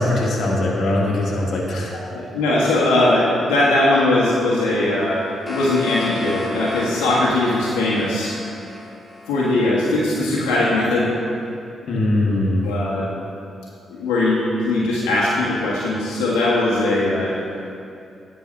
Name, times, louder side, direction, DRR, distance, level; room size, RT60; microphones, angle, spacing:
voice 1, 0.0-1.9 11.9-12.6, left 1 dB, 65° left, -3 dB, 1.7 m, -21 dB
voice 2, 2.1-8.4 9.3-11.1 12.6-13.1 13.9-17.3, left 2 dB, 85° left, -7 dB, 1.5 m, -20 dB
sound 1, 5.1-10.1, left 2 dB, 20° left, 1.9 m, -32 dB
10.5 x 4.7 x 6.6 m, 2.6 s
hypercardioid pair, 45°, 0 cm